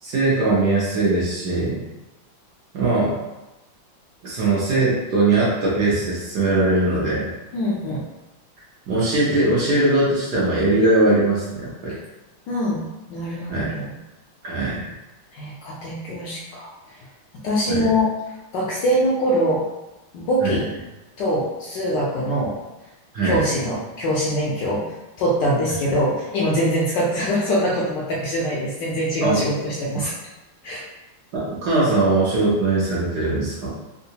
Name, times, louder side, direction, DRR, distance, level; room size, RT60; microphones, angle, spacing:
voice 1, 0.0-1.8 2.7-3.1 4.2-7.3 8.9-12.0 13.5-13.7 14.4-14.9 17.7-17.9 20.4-20.6 23.1-23.4 29.2-29.4 29.9-30.1 31.3-33.7, right 2 dB, 65° right, -6 dB, 1.1 m, -20 dB
voice 2, 7.5-8.0 12.5-14.0 15.3-16.7 17.4-18.1 18.5-19.7 20.1-20.7 21.2-22.6 23.2-24.9 25.2-30.2 30.6-30.8, equal, 70° left, -5 dB, 1.1 m, -23 dB
3.6 x 2.4 x 2.7 m, 1.0 s
omnidirectional pair, 2.3 m